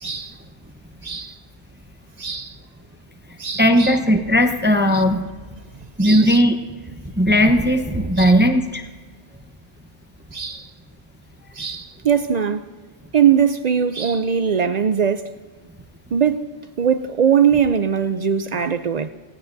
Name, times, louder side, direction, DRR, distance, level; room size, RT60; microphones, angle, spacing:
voice 1, 0.0-0.4 1.0-1.3 2.2-2.6 3.4-4.0 4.9-5.0 6.0-6.4 8.2-8.3 10.3-10.7 11.5-12.7 13.1-15.3 16.1-16.5 16.8-19.1, right 7 dB, 60° right, 0.4 m, -21 dB
voice 2, 3.6-5.3 6.0-6.6 7.2-8.8, equal, 10° right, 0.7 m, -17 dB
18.0 x 18.0 x 2.6 m
omnidirectional pair, 1.2 m